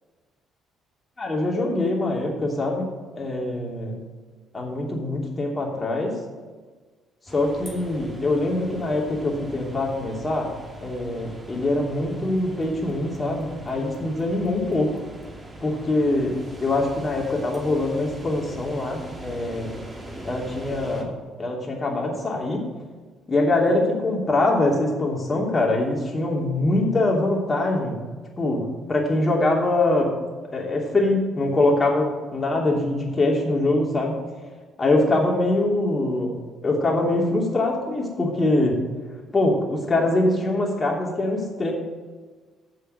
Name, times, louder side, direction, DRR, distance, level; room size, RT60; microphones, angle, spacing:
voice 1, 1.2-2.9 3.2-4.0 4.5-6.2 7.3-10.5 10.8-14.9 15.6-16.3 16.6-19.7 20.2-22.7 23.3-27.9 28.4-30.1 30.5-34.2 34.8-36.4 36.6-38.8 39.3-41.7, left 2 dB, 30° left, -2 dB, 3.0 m, -23 dB
sound 1, 7.3-21.0, right 1 dB, 15° right, 2.4 m, -41 dB
7.3 x 6.7 x 7.8 m, 1.4 s
hypercardioid pair, 60°, 0 cm